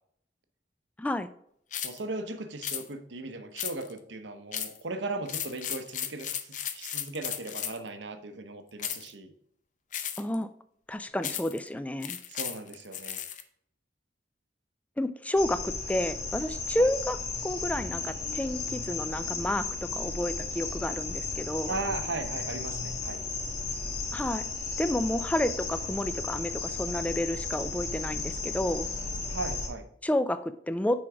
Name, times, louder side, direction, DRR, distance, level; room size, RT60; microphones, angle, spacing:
sound 1, 1.7-2.0 2.6-2.8 3.6-4.0 4.5-4.8 5.3-7.9 8.8-9.1 9.9-10.4 11.2-11.6 12.0-13.4, left 9 dB, 45° left, 0.6 m, -35 dB
voice 1, 1.8-9.3 12.3-13.2 16.8-16.9 21.7-23.2 29.3-29.9, right 3 dB, 85° right, 8 dB, 0.9 m, -37 dB
voice 2, 10.2-10.5 10.9-12.2 15.0-17.2 17.4-21.7 24.1-24.5 24.8-28.9 30.0-31.0, left 1 dB, 10° left, 12 dB, 0.3 m, -30 dB
sound 2, 15.4-29.7, left 4 dB, 65° left, 1.4 m, -34 dB
6.3 x 4.5 x 4.8 m, 0.68 s
head